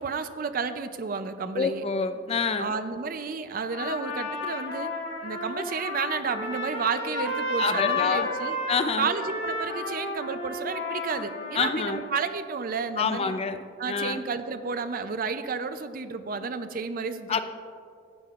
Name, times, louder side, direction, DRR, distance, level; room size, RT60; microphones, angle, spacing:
voice 1, 0.0-1.8 2.6-4.9 5.2-8.6 9.0-13.3 13.8-17.4, right 5 dB, 50° right, 10 dB, 0.5 m, -31 dB
voice 2, 1.6-2.7 7.6-8.3 8.7-9.1 11.5-12.0 13.0-13.6 13.9-14.2 17.3-17.4, left 5 dB, 35° left, 9 dB, 0.4 m, -27 dB
Trumpet, 3.7-12.2, left 2 dB, 70° left, 1.7 m, -32 dB
15.0 x 8.9 x 2.4 m, 2.3 s
head